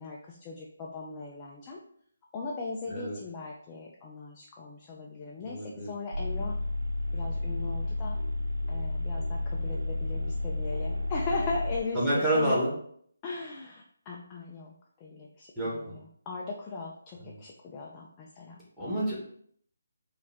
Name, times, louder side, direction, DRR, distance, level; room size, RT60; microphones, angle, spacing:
voice 1, 0.0-1.8 2.3-6.6 7.1-8.2 8.7-12.6 13.2-14.7 15.0-15.5 15.7-18.6, left 3 dB, 15° left, -3 dB, 0.4 m, -38 dB
voice 2, 2.9-3.2 5.4-5.9 11.9-12.7 15.6-16.0 17.2-17.4 18.8-19.1, right 1 dB, ahead, -9 dB, 1.1 m, -29 dB
sound 1, 6.1-11.8, left 2 dB, 75° right, 0.4 m, -31 dB
4.9 x 2.4 x 3.4 m, 0.63 s
hypercardioid pair, 170°, 0 cm